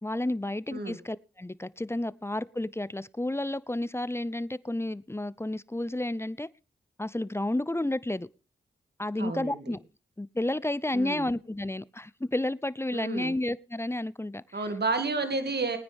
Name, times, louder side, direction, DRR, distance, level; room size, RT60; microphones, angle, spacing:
voice 1, 0.0-6.5 7.0-8.3 9.0-9.8 10.2-14.7, left 1 dB, 10° left, 0.7 m, -31 dB
voice 2, 9.2-9.6 10.9-11.3 12.9-13.3 14.5-15.8, right 3 dB, 55° right, 2.3 m, -31 dB
20.5 x 9.6 x 3.5 m
cardioid pair, 40°, 21 cm